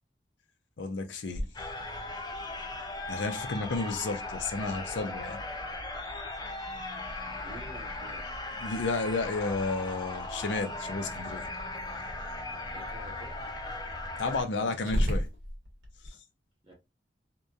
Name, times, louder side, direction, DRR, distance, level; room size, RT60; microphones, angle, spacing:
voice 1, 0.8-1.5 3.1-5.4 8.6-11.4 14.2-15.3 16.0-16.2, left 3 dB, 85° left, 0.5 m, -32 dB
Growling, 1.3-16.1, equal, 85° right, 1.1 m, -40 dB
sound 1, 1.5-14.4, left 2 dB, 25° left, 0.4 m, -38 dB
voice 2, 7.4-8.3 8.6-8.7 12.5-13.6 16.6-16.7, right 1 dB, 30° right, 1.0 m, -49 dB
2.8 x 2.2 x 2.3 m
head